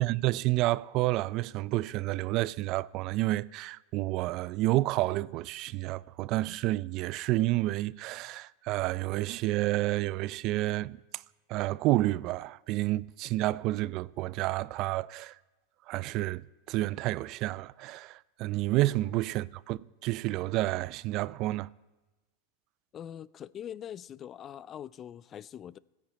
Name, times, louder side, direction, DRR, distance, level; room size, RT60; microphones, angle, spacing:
voice 1, 0.0-11.0 11.5-15.4 15.9-21.7, right 17 dB, 50° right, 0.4 m, -30 dB
voice 2, 22.9-25.8, left 10 dB, 35° left, 0.5 m, -43 dB
15.0 x 10.5 x 8.6 m
hypercardioid pair, 110°, 0 cm